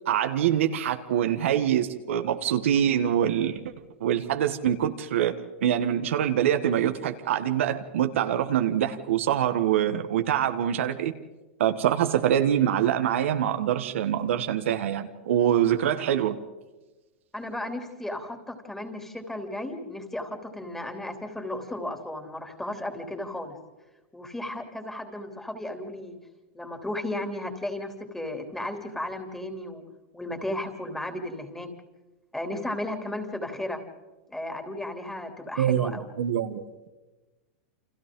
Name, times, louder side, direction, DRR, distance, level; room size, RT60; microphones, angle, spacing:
voice 1, 0.1-3.6 4.0-5.3 5.6-11.1 11.6-16.4 35.6-36.9, right 10 dB, 80° right, 7 dB, 1.7 m, -25 dB
voice 2, 17.3-23.5 24.1-26.2 26.5-29.8 30.1-31.7 32.3-33.8 34.3-36.1, left 1 dB, 5° left, 4 dB, 3.2 m, -34 dB
29.5 x 26.0 x 3.9 m, 1.2 s
supercardioid pair, 130°, 7 cm